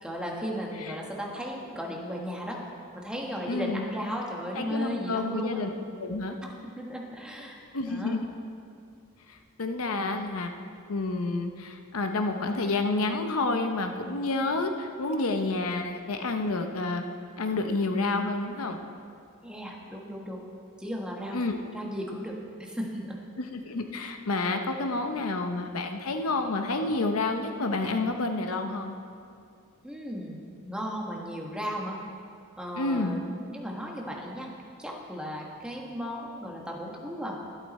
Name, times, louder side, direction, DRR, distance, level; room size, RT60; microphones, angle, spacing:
voice 1, 0.0-2.6 2.9-5.6 6.4-6.5 6.8-8.2 19.4-20.5 20.8-21.4 21.7-23.2 29.8-32.0 32.6-34.5 34.8-37.4, equal, 5° right, -2 dB, 1.4 m, -35 dB
voice 2, 3.5-3.8 4.5-5.7 6.0-6.4 7.7-8.3 9.3-10.5 10.9-17.0 17.4-18.8 21.3-21.6 23.4-29.0 32.8-33.2, left 3 dB, 85° left, 6 dB, 0.8 m, -29 dB
12.5 x 11.5 x 4.2 m, 2.4 s
head